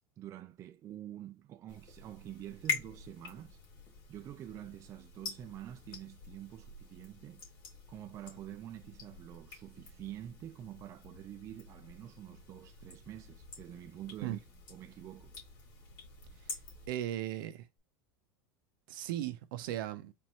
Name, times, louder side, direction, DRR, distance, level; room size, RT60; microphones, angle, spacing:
voice 1, 0.2-3.6 4.1-7.4 7.9-14.4 14.7-15.4, right 12 dB, 25° right, 0.4 m, -47 dB
sound 1, 1.7-16.9, left 5 dB, 35° left, 2.5 m, -46 dB
voice 2, 16.9-17.6 18.9-20.1, right 12 dB, 70° right, 0.7 m, -37 dB
4.4 x 2.7 x 3.1 m
supercardioid pair, 150°, 11 cm